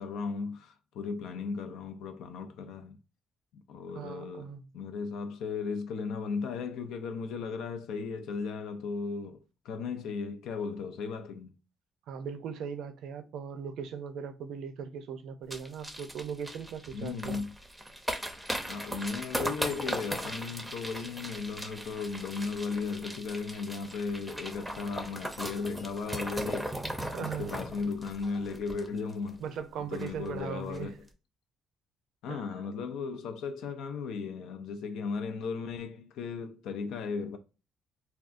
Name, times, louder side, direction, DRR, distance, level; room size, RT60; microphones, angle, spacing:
voice 1, 0.0-3.0 3.5-4.5 4.7-11.6 16.9-17.5 18.7-26.8 27.2-29.4 29.9-30.9 32.2-37.4, left 5 dB, 85° left, 0.4 m, -36 dB
voice 2, 3.9-4.7 12.1-17.4 27.1-27.5 29.4-30.9 32.3-32.6, right 7 dB, 85° right, 0.4 m, -39 dB
sound 1, 15.5-29.3 29.6-29.7 29.9-30.3 30.6-30.8, right 1 dB, 5° right, 0.6 m, -38 dB
3.5 x 2.3 x 2.4 m
cardioid pair, 90°, 0 cm